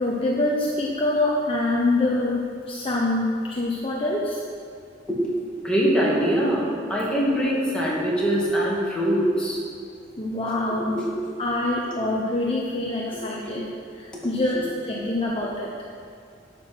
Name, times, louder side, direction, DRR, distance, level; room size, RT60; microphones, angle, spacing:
voice 1, 0.0-4.4 10.2-11.0 11.4-15.7, left 2 dB, 30° left, -4 dB, 1.0 m, -25 dB
voice 2, 5.6-6.6 6.9-9.6 10.9-11.1 11.9-12.0 13.1-13.2 13.5-13.6 14.1-14.3 14.5-14.6, equal, 5° left, -6 dB, 2.5 m, -23 dB
11.0 x 6.1 x 7.8 m, 2.3 s
head